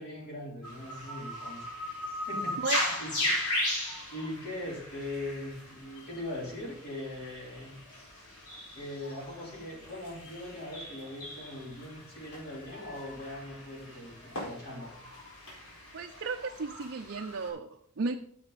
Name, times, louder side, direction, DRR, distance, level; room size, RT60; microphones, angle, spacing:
voice 1, 0.0-1.7 2.3-3.1 4.1-7.7 8.7-14.9, left 1 dB, 45° left, -4 dB, 3.3 m, -40 dB
sound 1, 0.6-17.5, left 1 dB, 85° left, 4.2 m, -38 dB
voice 2, 15.9-18.1, right 4 dB, 50° right, 3 dB, 0.6 m, -34 dB
9.8 x 7.9 x 4.0 m, 0.65 s
head